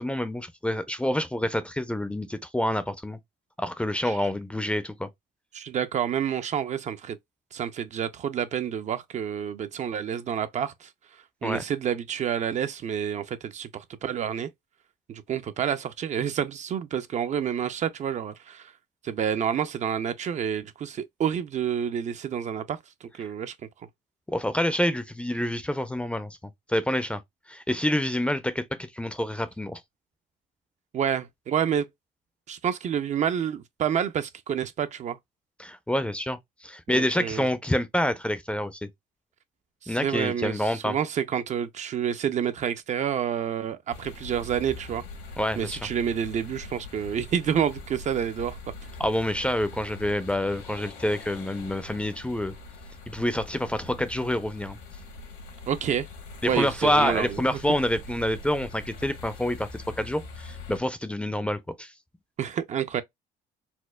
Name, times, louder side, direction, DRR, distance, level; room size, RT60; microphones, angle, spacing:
voice 1, 0.0-3.2 3.6-5.1 11.4-11.6 24.3-26.4 26.7-27.2 27.5-29.8 35.6-38.9 39.9-41.0 45.4-45.8 49.0-52.5 53.1-54.8 56.4-61.9, left 1 dB, 5° left, 0.5 m, -27 dB
voice 2, 5.5-7.2 7.5-10.9 11.4-14.5 15.1-18.7 19.0-23.5 30.9-31.9 32.5-35.2 36.9-37.5 39.8-45.0 45.6-48.6 55.7-56.1 56.5-57.4 62.4-63.0, right 8 dB, 45° right, 0.5 m, -29 dB
sound 1, 43.9-60.8, left 3 dB, 80° left, 1.5 m, -43 dB
4.3 x 2.3 x 2.2 m
cardioid pair, 110°, 17 cm